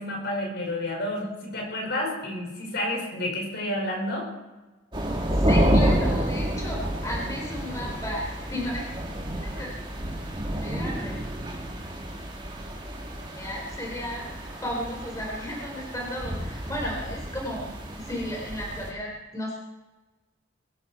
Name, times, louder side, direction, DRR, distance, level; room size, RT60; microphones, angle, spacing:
voice 1, 0.0-4.3, left 1 dB, 55° left, 0 dB, 5.8 m, -30 dB
sound 1, 4.9-18.9, equal, 25° right, 2.7 m, -29 dB
voice 2, 5.2-8.9 9.4-9.7 10.6-11.1 13.4-19.6, equal, 15° left, -2 dB, 4.1 m, -34 dB
23.0 x 13.5 x 4.5 m, 1.1 s
head